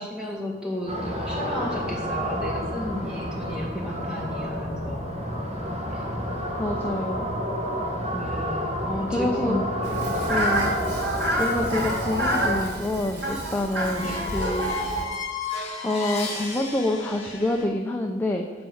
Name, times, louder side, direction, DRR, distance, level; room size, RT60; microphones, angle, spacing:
voice 1, 0.0-5.1 5.9-6.1 8.1-10.1 14.0-14.2, left 1 dB, 5° right, -3 dB, 2.2 m, -33 dB
sound 1, 0.9-12.6, equal, 35° right, 1.9 m, -30 dB
voice 2, 6.6-7.3 9.1-9.6 10.3-10.7 11.4-14.1 14.3-14.9 15.8-18.5, left 1 dB, 10° left, 0 dB, 0.7 m, -27 dB
Fowl, 9.8-15.0, right 1 dB, 85° right, 3.9 m, -28 dB
sound 2, 9.9-17.6, left 4 dB, 35° left, 2.3 m, -36 dB
12.0 x 4.6 x 8.0 m, 1.3 s
head